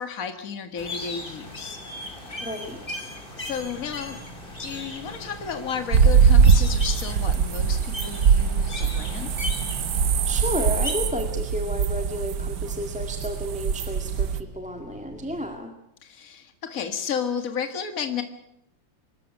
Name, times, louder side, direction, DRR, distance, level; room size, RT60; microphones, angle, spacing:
voice 1, 0.0-1.8 3.4-4.3 4.6-9.3 16.0-18.2, left 7 dB, 45° left, 8 dB, 2.1 m, -32 dB
sound 1, 0.8-10.9, left 2 dB, 25° left, 3.8 m, -38 dB
voice 2, 2.4-3.1 10.3-15.7, left 1 dB, 5° right, 4 dB, 1.9 m, -32 dB
sound 2, 3.4-15.5, right 1 dB, 75° left, 6.1 m, -47 dB
sound 3, 5.9-14.4, right 6 dB, 60° right, 1.5 m, -22 dB
24.5 x 14.0 x 9.4 m, 0.80 s
omnidirectional pair, 2.1 m